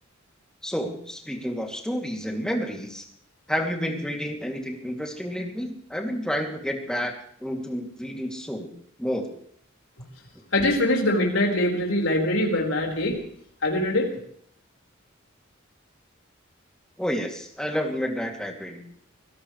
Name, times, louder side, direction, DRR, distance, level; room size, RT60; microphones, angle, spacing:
voice 1, 0.6-3.1 3.5-7.1 7.4-8.7 9.0-9.3 17.0-18.8, equal, 5° left, 1 dB, 2.6 m, -30 dB
voice 2, 10.5-13.2 13.6-14.1, left 1 dB, 75° left, 0 dB, 4.8 m, -23 dB
25.5 x 17.5 x 3.3 m, 0.65 s
head